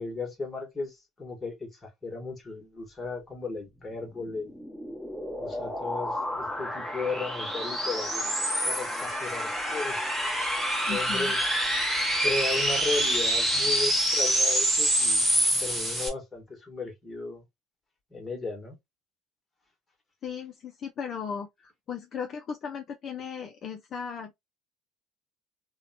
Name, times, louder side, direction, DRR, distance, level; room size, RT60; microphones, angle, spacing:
voice 1, 0.0-4.5 5.4-8.2 8.7-10.0 10.9-11.4 12.2-17.4 18.1-18.8, left 3 dB, 20° left, 1.2 m, -35 dB
sound 1, 4.3-16.1, right 1 dB, 5° right, 1.0 m, -27 dB
voice 2, 10.9-11.4 20.2-24.3, left 6 dB, 40° left, 0.4 m, -36 dB
2.8 x 2.1 x 2.6 m
cardioid pair, 125°, 0 cm